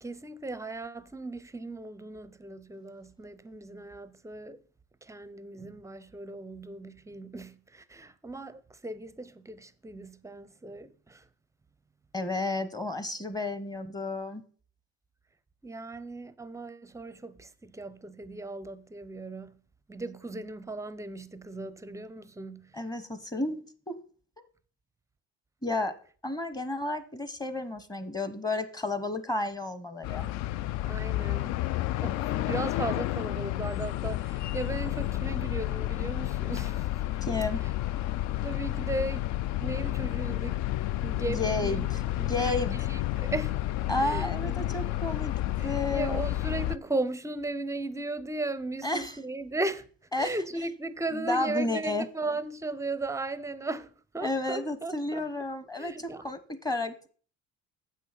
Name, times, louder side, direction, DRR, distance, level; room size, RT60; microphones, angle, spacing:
voice 1, 0.0-4.6 5.0-11.3 15.6-19.6 19.9-22.7 30.8-31.6 32.0-37.0 37.6-37.7 38.4-39.3 39.6-40.7 41.0-41.8 42.2-43.6 44.0-45.0 45.6-49.9 50.2-55.3 55.8-56.3, right 2 dB, 10° right, 0.5 m, -37 dB
voice 2, 12.1-14.4 22.7-23.9 25.6-25.9 26.2-30.3 37.2-37.6 41.3-41.9 42.2-42.8 43.9-45.3 45.6-46.3 48.8-49.2 50.1-50.3 51.1-52.1 54.2-57.1, left 2 dB, 10° left, 0.9 m, -32 dB
sound 1, 30.0-46.8, left 14 dB, 60° left, 0.4 m, -31 dB
8.3 x 6.3 x 5.8 m
cardioid pair, 120°, 32 cm